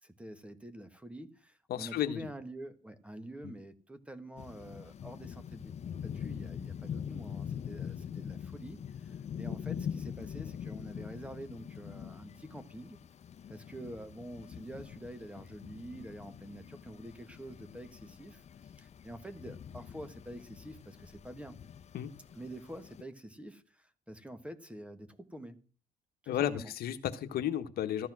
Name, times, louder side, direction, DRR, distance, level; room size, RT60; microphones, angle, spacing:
voice 1, 0.0-13.0 13.5-21.6 22.3-25.7 26.2-26.7, right 1 dB, 5° right, 1.3 m, -47 dB
voice 2, 1.7-2.2 3.4-3.5 21.9-22.1 26.3-28.1, left 11 dB, 65° left, 1.3 m, -33 dB
sound 1, 4.4-23.0, left 8 dB, 40° left, 0.8 m, -44 dB
14.5 x 10.5 x 6.1 m
cardioid pair, 110°, 17 cm